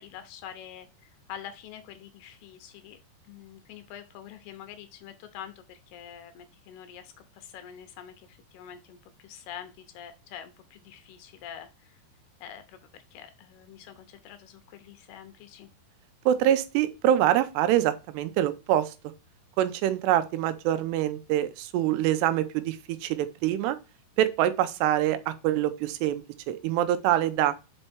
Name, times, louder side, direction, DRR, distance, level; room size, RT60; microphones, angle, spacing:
voice 1, 0.0-3.0 3.2-12.0 12.4-15.7, left 9 dB, 75° left, 2.7 m, -46 dB
voice 2, 16.3-18.9 19.6-23.8 24.2-27.5, right 12 dB, 85° right, 2.7 m, -25 dB
5.5 x 5.4 x 4.4 m
omnidirectional pair, 4.8 m